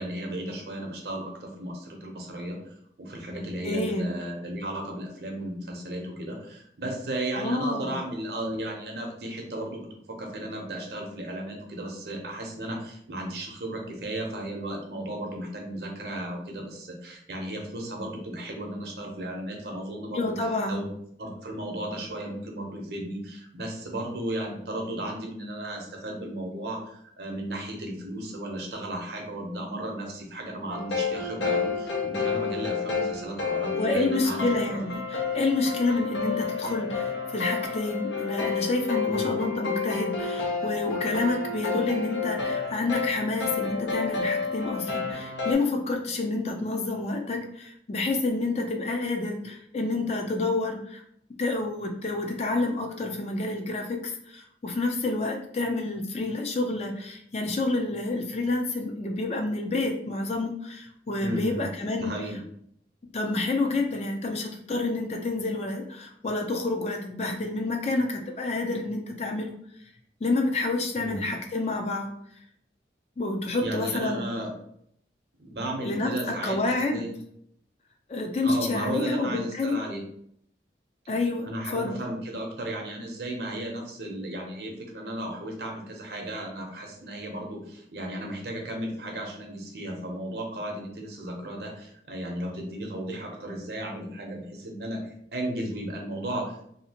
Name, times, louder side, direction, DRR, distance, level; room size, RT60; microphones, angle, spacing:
voice 1, 0.0-2.6 3.0-20.8 21.2-34.8 39.1-39.4 61.2-61.7 61.9-62.4 71.0-71.2 73.6-74.5 75.4-77.1 78.4-80.0 81.5-96.7, right 1 dB, 65° right, 1 dB, 0.7 m, -35 dB
voice 2, 3.6-4.1 7.4-7.9 20.1-20.8 33.8-51.0 51.4-62.1 63.1-69.5 70.2-72.1 73.2-74.2 75.8-76.1 76.4-77.0 78.1-79.8 81.1-81.9, left 2 dB, 35° left, 2 dB, 0.4 m, -28 dB
sound 1, 30.7-45.5, left 5 dB, 85° left, 0.6 m, -30 dB
2.8 x 2.4 x 2.8 m, 0.69 s
head